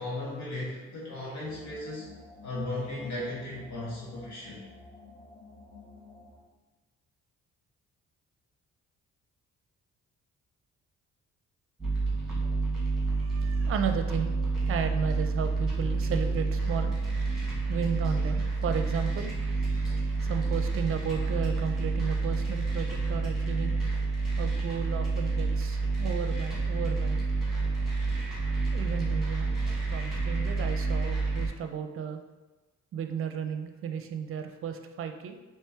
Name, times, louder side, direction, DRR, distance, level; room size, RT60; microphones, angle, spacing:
voice 1, 0.0-2.1 2.4-4.6, left 1 dB, 70° left, -7 dB, 1.5 m, -36 dB
sound 1, 1.2-6.4, left 3 dB, 30° left, 1.0 m, -51 dB
sound 2, 11.8-31.5, right 3 dB, ahead, 1.5 m, -29 dB
voice 2, 13.0-23.8 24.4-27.3 28.7-29.6 29.9-32.2 32.9-35.4, right 7 dB, 45° right, 6 dB, 0.5 m, -34 dB
4.3 x 3.1 x 3.5 m, 1.2 s
cardioid pair, 90°, 30 cm